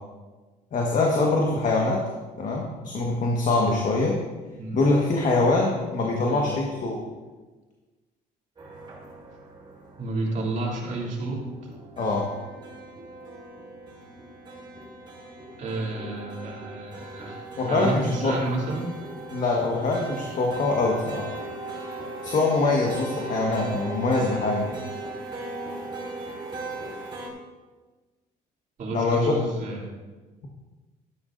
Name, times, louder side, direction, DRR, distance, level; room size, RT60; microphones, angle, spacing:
voice 1, 0.7-2.0 2.4-4.2 4.7-7.1 12.0-12.3 17.6-18.3 19.3-21.2 22.2-24.8 28.9-29.3, left 3 dB, 50° left, -1 dB, 1.5 m, -23 dB
voice 2, 6.0-6.5 10.0-11.5 15.6-19.0 28.8-29.9, right 2 dB, 50° right, -3 dB, 3.1 m, -31 dB
sound 1, 8.6-27.3, right 2 dB, 30° right, 3.0 m, -38 dB
13.0 x 9.9 x 2.6 m, 1.3 s
cardioid pair, 110°, 17 cm